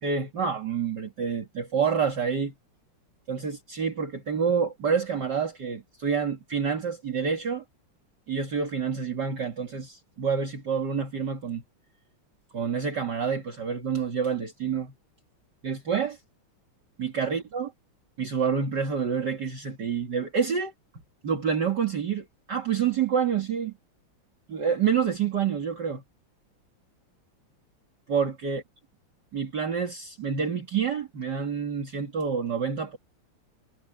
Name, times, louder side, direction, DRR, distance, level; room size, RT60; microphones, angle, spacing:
voice 1, 0.0-2.5 3.3-7.6 8.3-11.6 12.5-14.9 15.6-16.2 17.0-17.7 18.2-20.7 21.2-23.7 24.5-26.0 28.1-28.6 29.3-33.0, right 6 dB, 50° right, 2.7 m, -28 dB
omnidirectional pair, 2.4 m